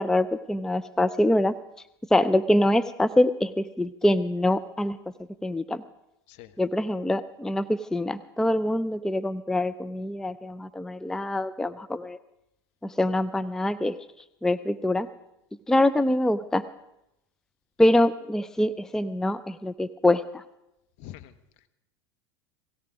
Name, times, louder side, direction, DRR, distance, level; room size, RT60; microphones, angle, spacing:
voice 1, 0.0-1.6 2.1-5.0 5.4-5.8 6.6-12.2 12.8-14.0 14.4-15.1 15.7-16.6 17.8-20.4, left 1 dB, 5° left, 14 dB, 0.5 m, -24 dB
voice 2, 21.0-21.7, left 13 dB, 55° left, 10 dB, 1.0 m, -46 dB
17.5 x 16.5 x 4.9 m, 0.88 s
hypercardioid pair, 85°, 14 cm